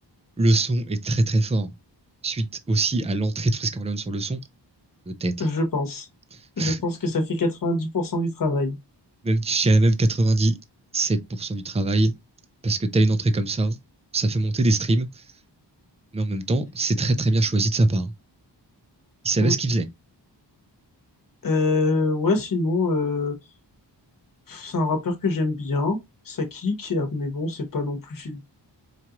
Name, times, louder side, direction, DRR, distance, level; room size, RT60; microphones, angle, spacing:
voice 1, 0.4-1.7 2.2-4.4 5.1-5.5 6.3-6.8 9.2-10.6 10.9-12.1 12.6-13.8 14.1-15.2 16.1-18.1 19.2-19.9, right 2 dB, 15° right, 0.4 m, -22 dB
voice 2, 5.4-6.1 6.6-8.8 19.4-19.5 21.4-23.3 24.5-26.0 26.3-28.4, left 2 dB, 50° left, 1.1 m, -25 dB
4.5 x 2.5 x 2.9 m
wide cardioid pair, 140°, 43 cm